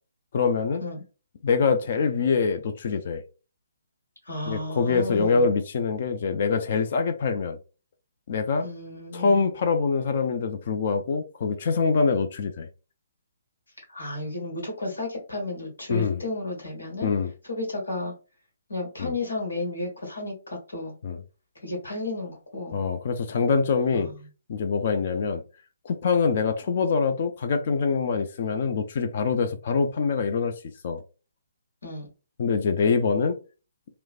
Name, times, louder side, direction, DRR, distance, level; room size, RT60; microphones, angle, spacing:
voice 1, 0.3-0.8 1.4-3.2 4.5-7.6 8.3-8.7 9.1-12.7 15.9-16.2 17.0-17.3 19.0-19.1 21.0-21.2 22.7-24.1 24.5-25.4 25.8-30.5 30.8-31.0 32.4-33.4, left 5 dB, 40° left, 0.3 m, -24 dB
voice 2, 4.2-5.5 8.6-9.5 13.9-17.1 17.4-18.1 18.7-20.9 21.6-22.8 23.9-24.2 31.8-32.1, left 2 dB, 65° left, 1.3 m, -33 dB
3.0 x 2.0 x 2.3 m
figure-of-eight pair, 135°, 0 cm